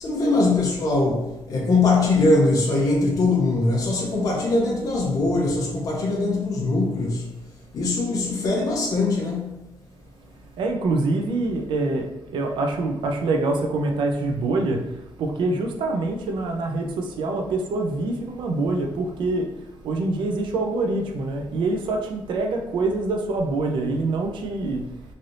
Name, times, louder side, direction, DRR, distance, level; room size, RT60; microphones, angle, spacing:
voice 1, 0.0-7.3 7.7-9.6, left 2 dB, 45° left, 0.6 m, -22 dB
voice 2, 10.6-24.9, right 2 dB, 70° right, 0.5 m, -25 dB
3.2 x 2.6 x 2.6 m
cardioid pair, 150°, 9 cm